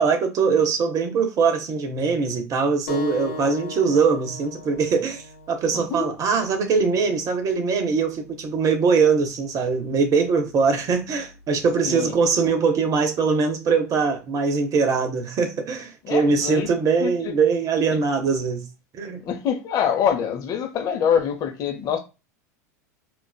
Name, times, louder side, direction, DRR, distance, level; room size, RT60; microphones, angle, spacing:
voice 1, 0.0-18.6 18.9-19.2, right 5 dB, 35° right, 0.7 m, -22 dB
sound 1, 2.9-8.0, left 2 dB, 65° left, 0.9 m, -38 dB
voice 2, 5.7-6.1 11.8-12.1 16.0-16.7 17.0-17.3 17.9-18.0 19.2-22.0, left 8 dB, 40° left, 0.7 m, -25 dB
3.8 x 2.4 x 2.2 m
hypercardioid pair, 85°, 10 cm